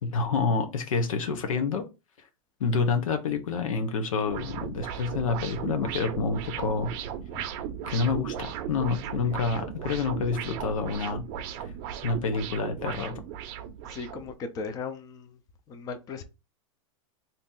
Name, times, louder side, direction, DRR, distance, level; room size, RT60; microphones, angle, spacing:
voice 1, 0.0-1.9 2.6-6.9 7.9-11.2 12.0-13.1, left 4 dB, 90° left, 0.8 m, -28 dB
sound 1, 4.3-14.3, right 9 dB, 45° right, 0.6 m, -36 dB
voice 2, 13.8-15.4 15.7-16.2, left 4 dB, 20° left, 0.5 m, -37 dB
2.9 x 2.6 x 3.7 m
supercardioid pair, 145°, 17 cm